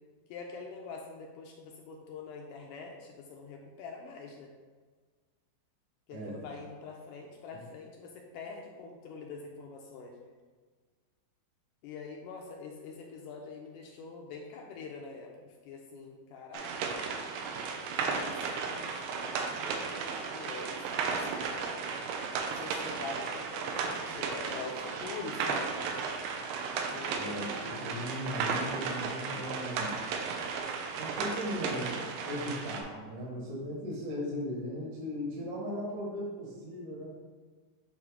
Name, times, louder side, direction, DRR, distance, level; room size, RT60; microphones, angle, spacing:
voice 1, 0.3-4.5 6.1-10.3 11.8-17.0 18.1-19.5 20.1-21.8 22.5-25.7 26.9-28.0, left 4 dB, 80° left, 1 dB, 1.9 m, -45 dB
voice 2, 6.1-6.4 27.2-29.9 31.0-37.2, left 1 dB, 55° right, -4 dB, 1.7 m, -37 dB
sound 1, 16.5-32.8, right 5 dB, 90° right, 2.4 m, -35 dB
8.1 x 2.8 x 4.9 m, 1.4 s
omnidirectional pair, 4.2 m